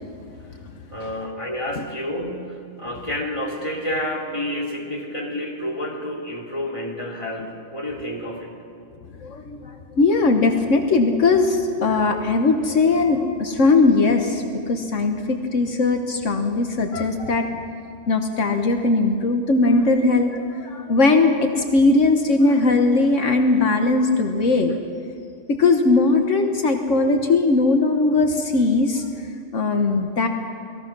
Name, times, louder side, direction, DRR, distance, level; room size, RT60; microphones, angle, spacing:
voice 1, 0.9-8.5, left 1 dB, 25° left, -1 dB, 3.1 m, -29 dB
voice 2, 9.2-17.6 18.1-24.8 25.5-29.0 29.5-30.3, left 3 dB, 75° left, 5 dB, 1.6 m, -19 dB
29.0 x 20.0 x 6.1 m, 2.4 s
omnidirectional pair, 1.3 m